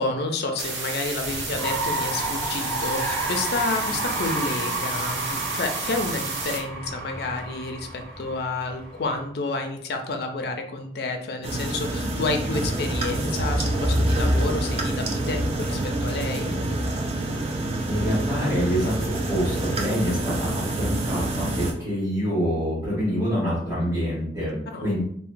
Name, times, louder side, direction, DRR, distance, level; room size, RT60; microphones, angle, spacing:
voice 1, 0.0-16.6 24.7-24.9, left 3 dB, 60° left, 4 dB, 0.4 m, -30 dB
sound 1, 0.6-6.6, right 3 dB, 75° right, 0.6 m, -32 dB
sound 2, 1.2-9.2, right 2 dB, 55° right, 1.1 m, -31 dB
sound 3, 11.4-21.7, right 1 dB, 35° right, 0.3 m, -26 dB
voice 2, 17.9-25.0, equal, 15° right, -11 dB, 1.0 m, -26 dB
2.9 x 2.1 x 2.5 m, 0.64 s
head